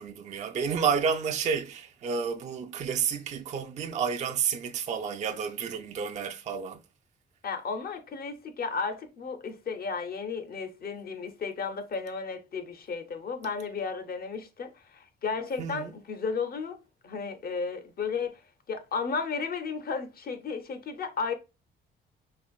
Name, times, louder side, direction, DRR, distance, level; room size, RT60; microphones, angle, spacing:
voice 1, 0.0-6.8 15.6-15.9, right 6 dB, 35° right, 0.4 m, -30 dB
voice 2, 7.4-16.8 17.0-18.4 18.7-21.3, left 5 dB, 50° left, 0.7 m, -34 dB
4.3 x 2.5 x 2.3 m
cardioid pair, 90°, 20 cm